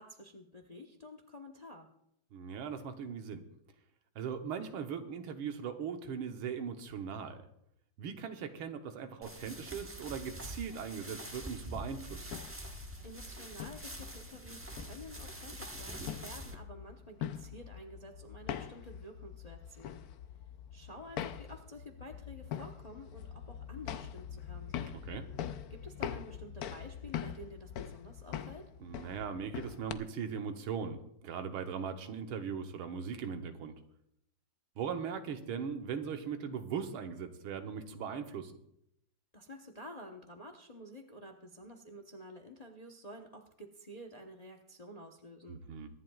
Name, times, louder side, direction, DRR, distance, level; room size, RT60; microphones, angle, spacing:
voice 1, 0.0-1.9 13.0-20.0 20.7-24.9 25.7-28.6 39.3-45.6, left 1 dB, 30° left, 4 dB, 0.7 m, -50 dB
voice 2, 2.3-3.4 4.2-7.5 8.0-12.3 25.1-25.3 28.8-33.7 34.8-38.5 45.5-45.9, right 7 dB, 85° right, 6 dB, 1.8 m, -39 dB
sound 1, 9.2-16.5, right 1 dB, 20° right, 0.4 m, -45 dB
sound 2, 12.2-29.9, left 9 dB, 75° left, 0.8 m, -43 dB
23.5 x 11.0 x 2.4 m, 0.77 s
omnidirectional pair, 2.3 m